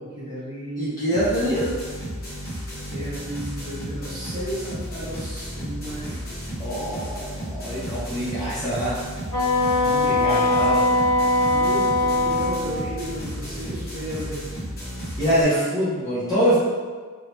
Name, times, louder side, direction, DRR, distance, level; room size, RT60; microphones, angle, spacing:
voice 1, 0.0-1.0 2.9-6.2 9.8-10.7 11.1-14.5 15.2-15.7, equal, 20° right, -11 dB, 1.0 m, -34 dB
voice 2, 0.8-1.7 6.6-7.2 7.5-9.0 9.8-10.9 15.2-16.6, equal, 15° left, -11 dB, 0.9 m, -24 dB
sound 1, 1.1-15.4, equal, 45° left, 1.0 m, -33 dB
Wind instrument woodwind instrument, 9.3-12.7, left 2 dB, 70° left, 0.7 m, -21 dB
2.8 x 2.3 x 3.2 m, 1.5 s
head